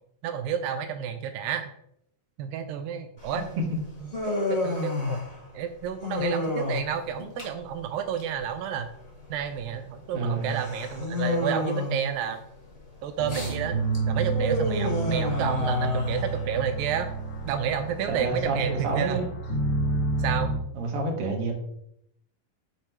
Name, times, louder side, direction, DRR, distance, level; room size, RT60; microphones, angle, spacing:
voice 1, 0.2-1.7 2.4-4.1 4.5-8.9 9.3-12.4 13.0-13.8 14.1-17.1 17.4-19.2 20.2-20.6, right 8 dB, 85° right, 8 dB, 2.2 m, -30 dB
Human voice, 3.2-18.4, left 2 dB, 60° left, 0.4 m, -31 dB
voice 2, 10.1-10.6 18.1-19.2 20.7-21.5, right 2 dB, 50° right, 0 dB, 2.0 m, -28 dB
sound 1, 13.2-20.6, right 3 dB, 40° left, 2.0 m, -30 dB
8.2 x 3.6 x 4.4 m, 0.76 s
omnidirectional pair, 4.0 m